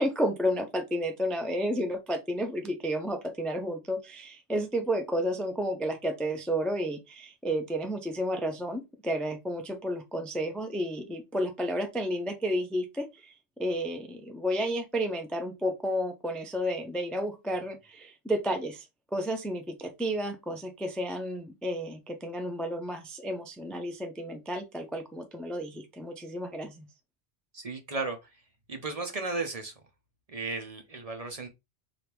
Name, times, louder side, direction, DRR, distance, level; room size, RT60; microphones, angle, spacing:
voice 1, 0.0-26.9, equal, ahead, 0.4 m, -31 dB
voice 2, 27.5-28.2 28.7-29.7 30.3-31.5, right 3 dB, 40° right, 0.7 m, -34 dB
3.5 x 2.5 x 4.4 m
omnidirectional pair, 1.1 m